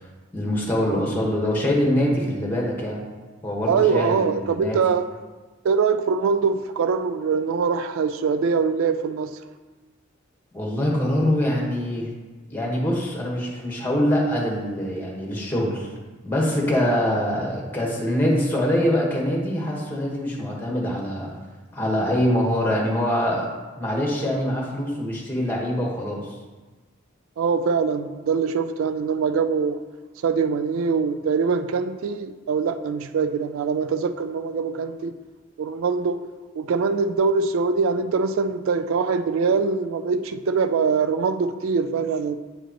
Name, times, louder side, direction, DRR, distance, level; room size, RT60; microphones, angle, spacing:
voice 1, 0.3-3.0 3.4-4.8 10.5-12.1 12.5-15.9 16.2-21.3 21.7-23.5 23.8-26.4, equal, 10° left, -2 dB, 1.3 m, -24 dB
voice 2, 3.7-5.1 5.6-9.4 27.4-29.8 30.2-35.2 35.6-36.2 36.5-42.3, right 5 dB, 85° right, 10 dB, 0.3 m, -23 dB
9.1 x 5.0 x 2.9 m, 1.3 s
head